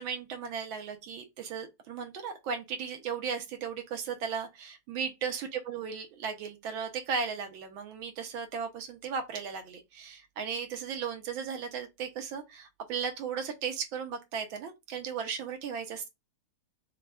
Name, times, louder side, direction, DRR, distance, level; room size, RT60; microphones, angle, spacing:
voice 1, 0.0-16.1, right 6 dB, 70° right, 1.4 m, -36 dB
6.5 x 2.2 x 2.2 m
omnidirectional pair, 2.4 m